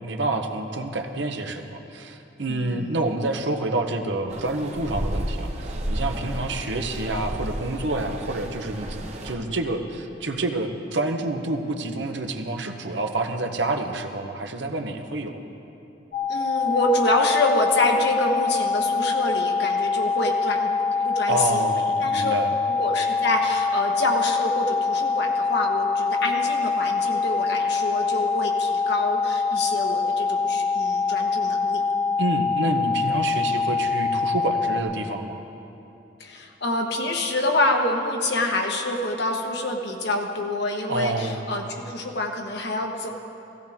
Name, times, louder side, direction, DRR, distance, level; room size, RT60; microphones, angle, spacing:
voice 1, 0.0-15.3 21.3-22.5 32.2-35.4 40.9-41.5, right 2 dB, 75° right, 5 dB, 1.0 m, -28 dB
voice 2, 2.5-3.0 16.3-20.7 21.0-21.7 22.0-22.3 22.7-31.8 36.2-43.1, left 1 dB, 65° left, 2 dB, 1.3 m, -26 dB
sound 1, 4.3-9.3, right 1 dB, 40° right, 1.0 m, -32 dB
sound 2, 16.1-34.8, left 4 dB, 45° left, 1.1 m, -24 dB
16.5 x 16.0 x 3.6 m, 3.0 s
head